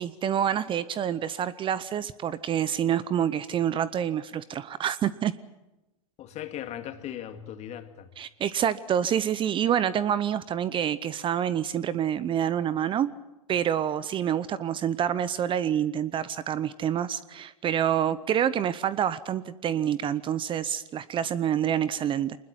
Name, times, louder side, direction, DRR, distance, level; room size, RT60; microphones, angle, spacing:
voice 1, 0.0-5.3 8.2-13.1 13.5-22.4, right 9 dB, 30° right, 0.7 m, -27 dB
voice 2, 6.2-8.1 18.1-18.2, left 11 dB, 40° left, 2.2 m, -38 dB
24.5 x 20.5 x 7.7 m
hypercardioid pair, 105°, 18 cm